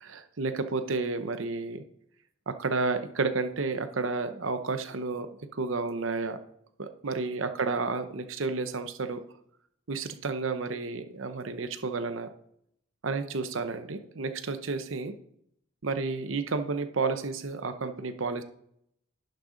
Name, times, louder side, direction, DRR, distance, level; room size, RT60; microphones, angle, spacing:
voice 1, 0.0-1.8 2.5-5.3 5.5-6.4 6.8-9.2 9.9-12.3 13.0-15.1 15.8-18.4, right 3 dB, 70° right, 9 dB, 0.8 m, -31 dB
11.5 x 6.7 x 3.9 m, 0.72 s
head